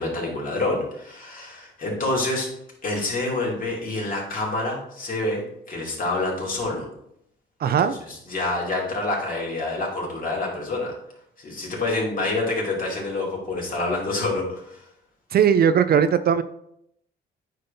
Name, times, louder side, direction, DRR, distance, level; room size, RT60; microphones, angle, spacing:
voice 1, 0.0-2.5 2.8-6.9 7.6-11.0 11.4-14.8, left 2 dB, 45° left, -2 dB, 2.7 m, -27 dB
voice 2, 7.6-8.0 15.3-16.4, right 8 dB, 50° right, 12 dB, 0.4 m, -18 dB
9.0 x 5.3 x 2.7 m, 0.74 s
cardioid pair, 90°, 20 cm